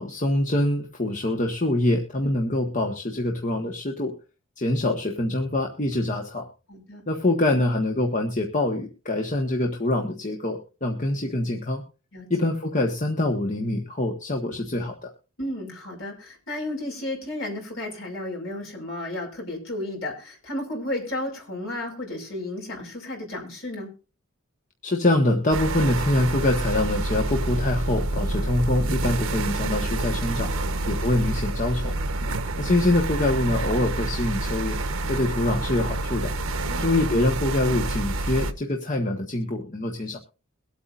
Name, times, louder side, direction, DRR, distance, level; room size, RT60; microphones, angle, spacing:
voice 1, 0.0-4.1 4.6-6.5 7.1-11.8 12.3-15.1 24.8-30.5 30.9-32.0 32.6-34.8 35.1-36.3 36.8-40.2, left 1 dB, 35° left, 2 dB, 1.4 m, -25 dB
voice 2, 6.7-7.0 12.1-12.5 15.4-23.9 30.6-30.9 32.2-32.3 36.7-36.9, left 1 dB, 65° left, 0 dB, 5.6 m, -33 dB
sound 1, 25.5-38.5, right 2 dB, 70° right, 1.1 m, -28 dB
23.0 x 8.3 x 2.5 m, 0.33 s
head